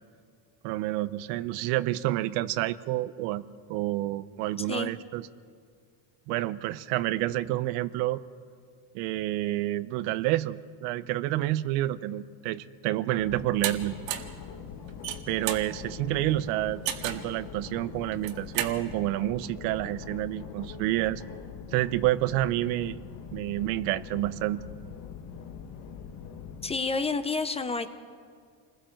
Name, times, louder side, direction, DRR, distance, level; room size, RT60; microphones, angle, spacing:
voice 1, 0.6-3.4 3.7-5.3 6.3-8.2 8.9-14.0 15.3-21.2 21.7-23.0 23.3-24.6, right 15 dB, 90° right, 15 dB, 0.9 m, -29 dB
voice 2, 4.6-4.9 26.6-27.9, left 4 dB, 15° left, 10 dB, 0.5 m, -29 dB
sound 1, 13.2-26.8, left 7 dB, 45° left, 1.6 m, -42 dB
sound 2, 13.6-13.7 14.1-14.4 14.9-15.7 16.9-17.3 18.1-18.8, right 11 dB, 70° right, 1.8 m, -31 dB
28.5 x 20.5 x 4.5 m, 2.1 s
cardioid pair, 155°, 46 cm